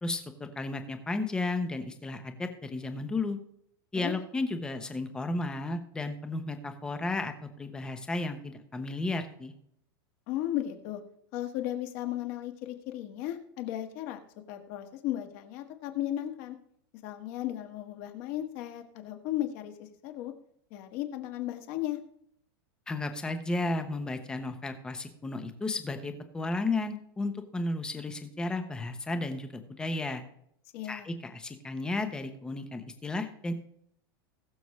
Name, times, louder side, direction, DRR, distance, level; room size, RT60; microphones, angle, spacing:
voice 1, 0.0-3.4 3.9-9.5 22.9-30.2 30.8-33.5, left 2 dB, 5° left, 7 dB, 0.9 m, -33 dB
voice 2, 10.3-11.0 11.3-14.2 14.5-16.6 17.0-20.3 20.7-22.0 30.7-31.1, left 13 dB, 40° left, 5 dB, 1.5 m, -35 dB
20.5 x 6.9 x 3.2 m, 0.71 s
supercardioid pair, 180°, 12 cm